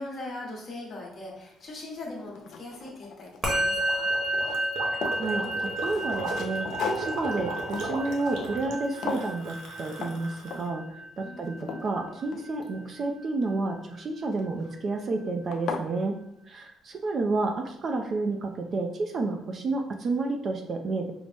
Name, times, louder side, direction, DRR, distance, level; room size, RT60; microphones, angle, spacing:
voice 1, 0.0-4.1 11.2-11.5, left 2 dB, 35° left, -2 dB, 1.0 m, -40 dB
sound 1, 1.6-1.7 2.2-3.6 3.9-5.3 5.8-8.8 9.0-9.4 9.9-10.2 10.5-10.8 11.3-12.8 14.3-14.7 15.2-15.3 15.5-15.9, left 4 dB, 60° left, 0.4 m, -36 dB
Musical instrument, 3.4-13.0, right 1 dB, 15° right, 1.0 m, -32 dB
Gurgling, 3.8-10.7, right 2 dB, 70° right, 0.8 m, -37 dB
voice 2, 5.2-6.7 7.0-7.5 7.8-10.8 11.2-16.2 16.5-21.1, right 3 dB, 35° right, 4 dB, 0.3 m, -30 dB
5.2 x 2.0 x 3.3 m, 0.75 s
cardioid pair, 160°, 0 cm